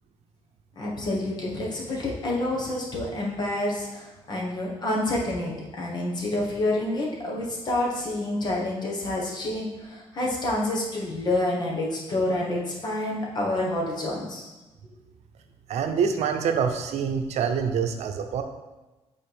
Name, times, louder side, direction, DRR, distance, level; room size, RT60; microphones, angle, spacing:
voice 1, 0.8-14.5, left 1 dB, 40° left, -2 dB, 1.4 m, -28 dB
voice 2, 15.7-18.4, right 6 dB, 80° right, 6 dB, 0.7 m, -26 dB
8.7 x 4.2 x 3.5 m, 1.1 s
cardioid pair, 170°, 11 cm